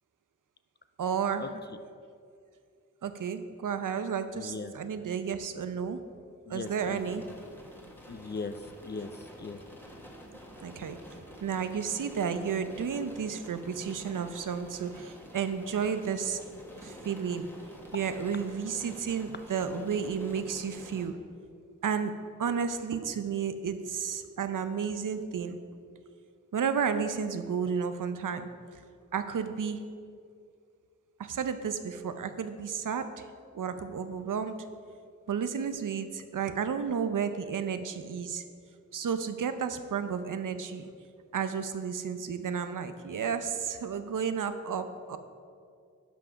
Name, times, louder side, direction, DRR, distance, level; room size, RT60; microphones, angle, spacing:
voice 1, 1.0-1.5 3.0-6.0 6.5-7.2 10.6-11.0 11.4-16.4 16.8-17.5 17.9-21.2 21.8-22.1 22.4-25.6 26.5-28.8 29.1-29.8 31.2-33.3 33.5-34.6 35.3-38.4 38.9-40.9 41.3-45.2, right 6 dB, 80° right, 10 dB, 0.7 m, -32 dB
voice 2, 4.3-4.7 6.5-7.3 8.1-8.6 8.8-9.6, left 4 dB, 35° left, 11 dB, 0.4 m, -39 dB
sound 1, 6.6-21.1, equal, 5° left, 1.5 m, -49 dB
11.0 x 5.8 x 5.1 m, 2.3 s
wide cardioid pair, 85°, 31 cm